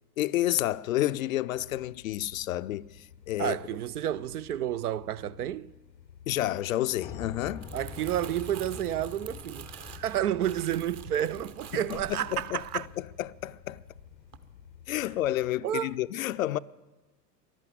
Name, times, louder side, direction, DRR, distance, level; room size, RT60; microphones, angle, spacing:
voice 1, 0.2-3.6 6.3-7.7 11.7-13.8 14.9-16.6, left 14 dB, 55° left, 0.5 m, -30 dB
Fan Drone Sever Room, 1.6-15.5, left 8 dB, 85° left, 0.8 m, -53 dB
voice 2, 3.4-5.7 7.7-12.9 15.6-15.9, right 11 dB, 65° right, 0.5 m, -30 dB
Piano, 7.0-15.0, left 5 dB, 10° left, 0.5 m, -47 dB
Crumpling crinkling, 7.3-13.7 14.1-14.4, right 9 dB, 30° right, 0.9 m, -48 dB
15.0 x 11.5 x 7.9 m
figure-of-eight pair, 85°, 50 cm